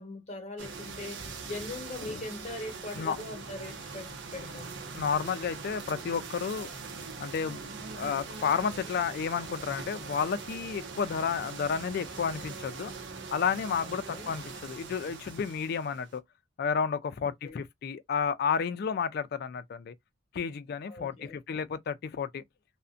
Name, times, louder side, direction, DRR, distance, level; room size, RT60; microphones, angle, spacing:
voice 1, 0.0-4.8 13.8-14.3 17.2-17.6 20.9-21.4, left 2 dB, 35° left, 0.9 m, -41 dB
sound 1, 0.6-16.2, right 4 dB, 70° right, 0.6 m, -42 dB
voice 2, 4.9-6.7 7.2-7.6 7.9-12.9 13.3-16.2 16.6-19.9 20.3-22.4, left 6 dB, 55° left, 0.3 m, -31 dB
2.5 x 2.0 x 2.4 m
head